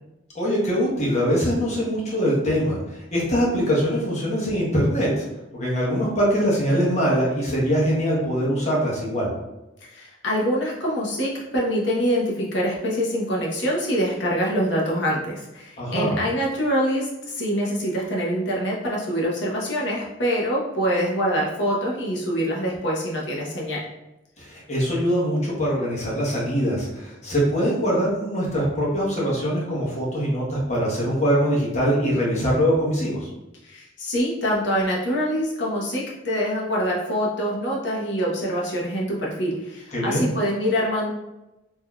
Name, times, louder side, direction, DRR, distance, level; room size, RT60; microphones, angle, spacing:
voice 1, 0.3-5.2 5.5-9.3 15.8-16.2 24.4-33.3 39.9-40.3, equal, 35° left, -5 dB, 1.1 m, -23 dB
voice 2, 9.8-23.8 33.6-41.1, equal, 65° left, -4 dB, 0.9 m, -25 dB
3.7 x 2.8 x 2.3 m, 0.97 s
head